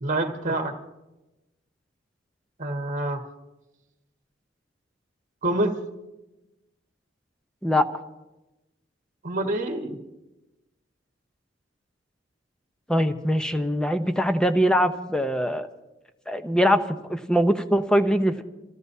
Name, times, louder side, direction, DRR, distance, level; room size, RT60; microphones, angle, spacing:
voice 1, 0.0-0.7 2.6-3.2 5.4-5.7 9.2-10.0, right 1 dB, 45° right, 3 dB, 1.6 m, -26 dB
voice 2, 12.9-15.7 16.3-18.4, equal, 5° left, 8 dB, 0.7 m, -22 dB
26.5 x 15.5 x 2.7 m, 1.0 s
head